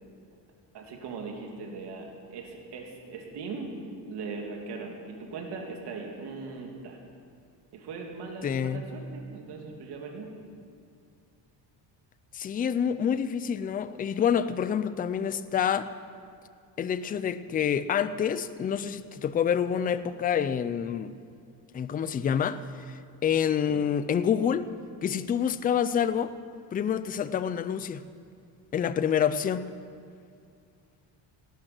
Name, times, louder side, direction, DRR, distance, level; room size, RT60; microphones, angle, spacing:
voice 1, 0.7-3.7 4.0-7.0 7.7-10.3, right 4 dB, 65° right, 1 dB, 2.8 m, -39 dB
voice 2, 8.4-8.8 12.3-15.9 16.8-21.1 21.7-22.6 22.9-24.7 25.0-26.3 26.7-28.0 28.7-29.7, left 8 dB, 25° left, 14 dB, 0.3 m, -27 dB
18.5 x 12.5 x 6.1 m, 2.3 s
cardioid pair, 165°, 43 cm